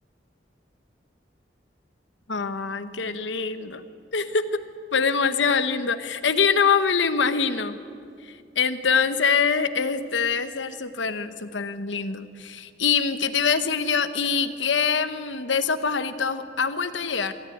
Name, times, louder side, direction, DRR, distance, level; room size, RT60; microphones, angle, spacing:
voice 1, 2.3-3.8 4.1-4.4 4.9-7.8 8.2-17.3, left 5 dB, 90° left, 11 dB, 1.1 m, -24 dB
25.0 x 13.5 x 9.3 m, 2.4 s
head